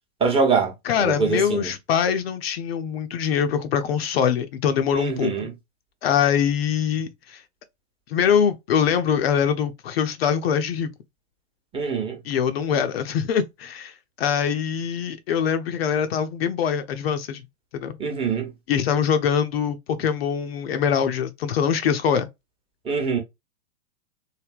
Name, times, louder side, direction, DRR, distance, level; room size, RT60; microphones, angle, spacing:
voice 1, 0.2-0.7 1.0-1.7 4.9-5.5 11.7-12.2 18.0-18.5 22.8-23.2, right 5 dB, 15° right, 0.9 m, -23 dB
voice 2, 0.8-5.5 6.0-7.4 8.1-10.9 12.2-17.4 17.7-17.9 18.7-22.3, left 8 dB, 50° left, 0.6 m, -23 dB
3.2 x 2.7 x 2.3 m
hypercardioid pair, 115°, 39 cm